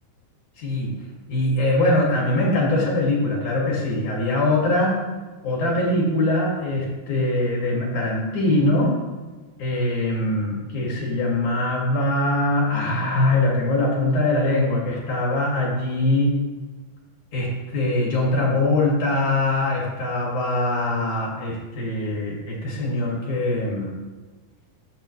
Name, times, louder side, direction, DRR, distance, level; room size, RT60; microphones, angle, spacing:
voice 1, 0.6-0.9 1.3-5.0 5.4-9.0 9.6-16.3 17.3-23.9, left 2 dB, 50° left, -3 dB, 3.9 m, -22 dB
15.0 x 10.0 x 3.4 m, 1.3 s
omnidirectional pair, 4.9 m